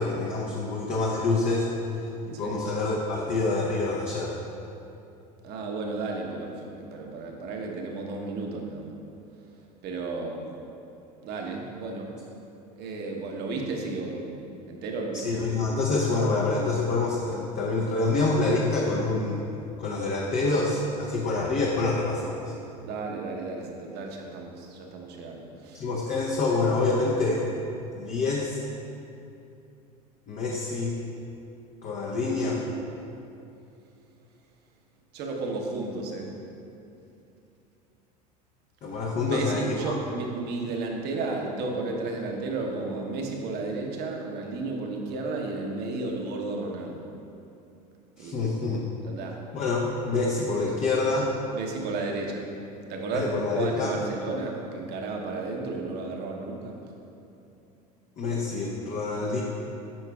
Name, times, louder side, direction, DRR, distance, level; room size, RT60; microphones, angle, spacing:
voice 1, 0.0-1.7 2.3-4.4 15.1-19.4 19.8-22.5 25.7-27.5 27.9-28.6 30.3-31.0 31.8-32.6 38.8-39.9 48.2-48.8 49.5-51.3 53.1-53.9 58.2-59.4, left 3 dB, 40° left, -3 dB, 0.8 m, -26 dB
voice 2, 2.2-2.6 5.4-8.9 9.8-10.5 11.2-12.1 12.8-14.3 14.7-15.4 22.8-25.9 35.1-36.3 39.2-47.1 48.2-48.4 49.0-49.4 51.5-52.4 52.9-56.7, right 3 dB, 50° right, 1 dB, 1.0 m, -33 dB
8.5 x 5.6 x 2.3 m, 2.7 s
hypercardioid pair, 75°, 21 cm